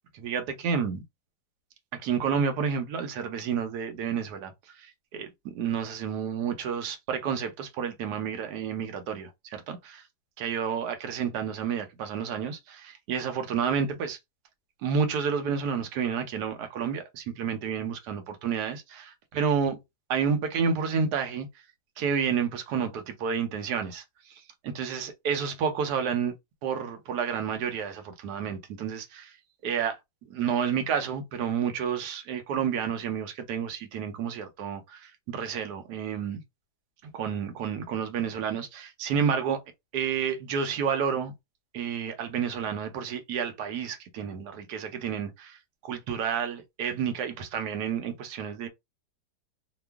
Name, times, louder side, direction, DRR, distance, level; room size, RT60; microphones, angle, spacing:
voice 1, 0.1-1.0 1.9-10.0 10.4-14.2 14.8-19.8 20.1-21.5 22.0-26.3 26.6-29.3 29.6-30.0 30.3-36.4 37.1-39.6 39.9-41.3 41.7-45.6 45.8-48.7, right 7 dB, 75° right, 1.2 m, -30 dB
2.9 x 2.3 x 3.4 m
omnidirectional pair, 1.8 m